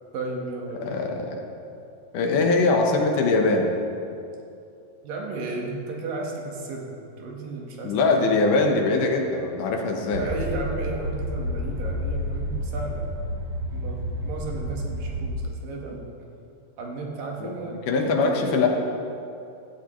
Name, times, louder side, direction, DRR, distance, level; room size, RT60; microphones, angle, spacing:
voice 1, 0.1-1.0 5.0-8.4 10.1-13.1 13.7-16.1 16.8-18.6, right 3 dB, 75° right, -1 dB, 3.1 m, -34 dB
voice 2, 0.8-1.4 2.1-3.7 7.8-10.3 17.4-17.5 17.9-18.7, left 3 dB, 70° left, 2 dB, 2.5 m, -22 dB
sound 1, 10.1-15.3, equal, 60° right, 2.8 m, -30 dB
15.0 x 14.0 x 3.1 m, 2.6 s
omnidirectional pair, 4.0 m